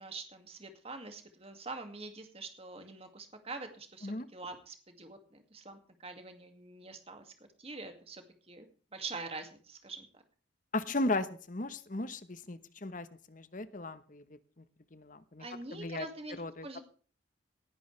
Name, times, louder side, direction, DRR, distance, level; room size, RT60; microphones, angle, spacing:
voice 1, 0.0-8.7 8.9-10.2 15.4-16.8, right 3 dB, 30° right, 6 dB, 2.2 m, -45 dB
voice 2, 10.7-14.2 14.9-15.4 15.7-16.0 16.4-16.8, left 2 dB, 40° left, 13 dB, 1.1 m, -36 dB
19.0 x 11.0 x 3.3 m, 0.41 s
head